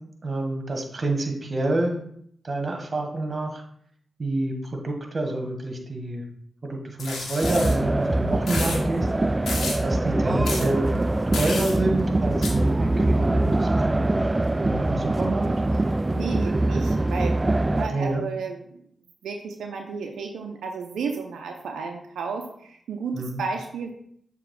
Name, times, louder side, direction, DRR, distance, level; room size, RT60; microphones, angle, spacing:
voice 1, 0.2-2.0 2.4-3.6 4.2-6.2 6.6-9.1 9.8-10.9 11.4-13.7 13.9-14.1 14.6-15.5 17.9-18.2 23.1-23.4, right 2 dB, 45° right, 3 dB, 1.5 m, -27 dB
sound 1, 7.0-7.7 8.5-8.8 9.5-9.8 10.4-10.7 11.3-11.7 12.4-12.5, left 3 dB, 80° left, 1.4 m, -31 dB
sound 2, 7.4-17.9, right 2 dB, 30° right, 0.3 m, -23 dB
voice 2, 16.1-18.8 19.2-23.9, right 5 dB, 85° right, 3 dB, 0.6 m, -32 dB
7.0 x 3.0 x 4.7 m, 0.66 s
supercardioid pair, 40°, 0 cm